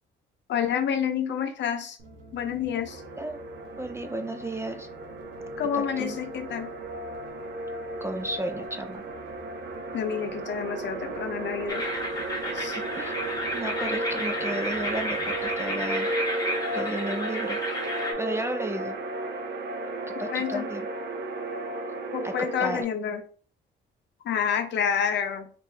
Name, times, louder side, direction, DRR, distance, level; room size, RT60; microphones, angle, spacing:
voice 1, 0.5-2.0 2.3-3.0 5.6-6.7 9.9-11.8 12.5-12.8 20.3-20.7 22.1-23.2 24.2-25.5, left 8 dB, 65° left, 7 dB, 0.7 m, -28 dB
sound 1, 2.0-15.8, right 2 dB, 85° right, 1.0 m, -49 dB
sound 2, 2.9-22.8, right 2 dB, 60° right, 0.6 m, -34 dB
voice 2, 3.1-3.4 3.8-4.9 5.7-6.1 8.0-9.0 12.7-13.1 13.5-16.1 16.7-17.6 18.2-19.0 20.1-20.9 22.2-22.9, right 1 dB, 15° right, 7 dB, 0.3 m, -33 dB
sound 3, 11.7-18.1, equal, 20° left, 1.1 m, -32 dB
3.7 x 2.5 x 2.8 m, 0.43 s
cardioid pair, 90°, 20 cm